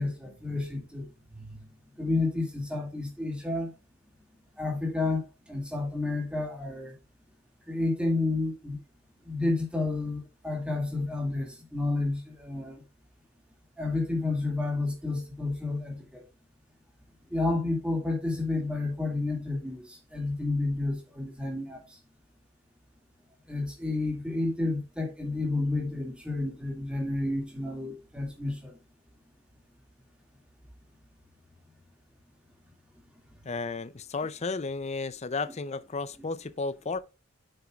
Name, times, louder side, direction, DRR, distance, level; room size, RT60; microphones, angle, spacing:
voice 1, 0.0-1.6 2.0-3.7 4.6-7.0 7.7-8.8 9.2-12.8 13.8-16.2 17.3-21.8 23.5-28.8, left 2 dB, 5° right, 2.3 m, -30 dB
voice 2, 33.4-37.0, left 4 dB, 35° left, 0.5 m, -33 dB
8.2 x 7.9 x 2.4 m
head